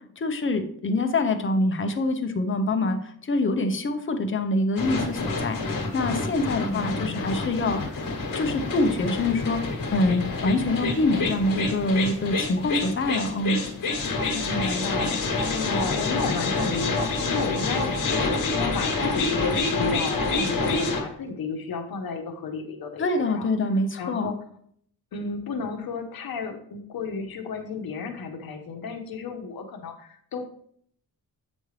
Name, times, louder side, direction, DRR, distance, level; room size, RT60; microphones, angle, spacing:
voice 1, 0.2-8.0 8.3-13.6 23.0-24.3, left 2 dB, 35° left, 6 dB, 0.8 m, -25 dB
sound 1, 4.8-21.0, left 3 dB, 60° left, 1.5 m, -27 dB
voice 2, 6.6-7.5 14.3-23.5 24.0-24.4 25.1-30.4, left 4 dB, 75° left, 5 dB, 1.0 m, -33 dB
8.0 x 5.4 x 3.2 m, 0.64 s
wide cardioid pair, 155°, 36 cm